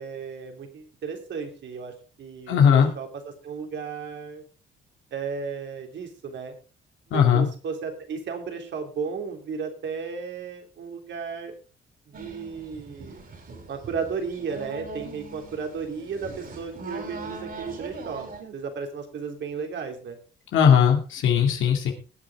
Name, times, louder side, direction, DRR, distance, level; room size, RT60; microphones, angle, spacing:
voice 1, 0.0-4.4 5.1-6.5 7.1-11.5 12.1-13.2 13.7-20.2, right 5 dB, 65° right, 4 dB, 3.3 m, -34 dB
voice 2, 2.5-2.9 7.1-7.5 20.5-21.9, left 8 dB, 80° left, 2 dB, 2.5 m, -18 dB
sound 1, 12.1-18.4, right 3 dB, 50° right, 4.6 m, -41 dB
20.5 x 8.2 x 3.6 m, 0.35 s
cardioid pair, 90°, 20 cm